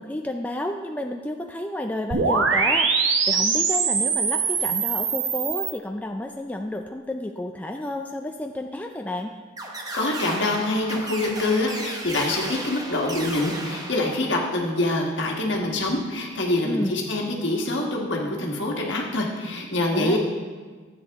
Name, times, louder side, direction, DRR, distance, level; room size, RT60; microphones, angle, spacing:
voice 1, 0.0-2.9 3.3-9.3 16.6-17.0 19.9-20.2, left 1 dB, 10° left, 3 dB, 0.3 m, -31 dB
sound 1, 2.1-5.7, right 5 dB, 70° right, 0.9 m, -22 dB
sound 2, 9.6-14.7, right 2 dB, 20° right, 0.8 m, -35 dB
voice 2, 9.9-20.2, left 2 dB, 65° left, 0 dB, 1.5 m, -25 dB
12.5 x 8.3 x 3.5 m, 1.5 s
head